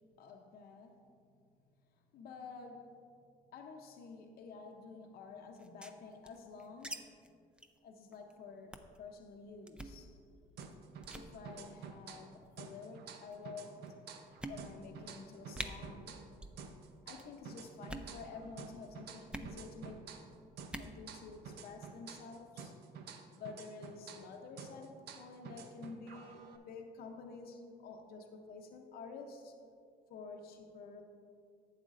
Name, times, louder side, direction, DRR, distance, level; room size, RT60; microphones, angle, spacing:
voice 1, 0.2-1.1 2.1-3.0 3.5-7.2 7.8-10.2 11.1-16.4 17.0-20.1 20.5-22.8 23.3-29.5 30.1-31.0, left 4 dB, 65° left, 3 dB, 0.7 m, -50 dB
sound 1, 5.6-7.0 7.2-7.3 7.6-7.8 8.1-8.3 8.7-9.0 9.7-10.0 10.6-10.8 11.0-11.3 12.2-12.6 13.3-13.4 13.9-14.0 14.4-15.0 15.2-15.3 15.5-15.7 16.3-16.6 16.9-17.3 17.8-18.1 19.3-19.5 20.6-20.9, right 1 dB, 5° right, 0.5 m, -45 dB
sound 2, 10.6-12.3 12.6-16.3 16.6-20.3 20.6-24.3 24.6-26.6, right 6 dB, 75° right, 0.7 m, -50 dB
11.5 x 8.3 x 2.5 m, 2.3 s
cardioid pair, 110°, 17 cm